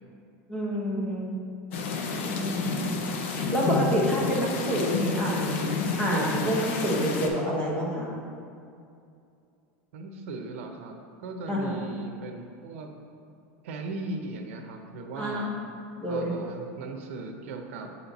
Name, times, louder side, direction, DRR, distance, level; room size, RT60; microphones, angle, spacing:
voice 1, 0.5-1.3 2.2-8.1 11.5-11.7 15.2-15.5 16.0-16.3, equal, 10° left, -4 dB, 1.0 m, -28 dB
sound 1, 1.7-7.3, left 4 dB, 70° left, 0.7 m, -29 dB
voice 2, 9.9-12.9 13.6-15.5 16.1-17.9, right 3 dB, 80° right, 4 dB, 0.7 m, -38 dB
7.3 x 4.3 x 4.0 m, 2.5 s
supercardioid pair, 175°, 7 cm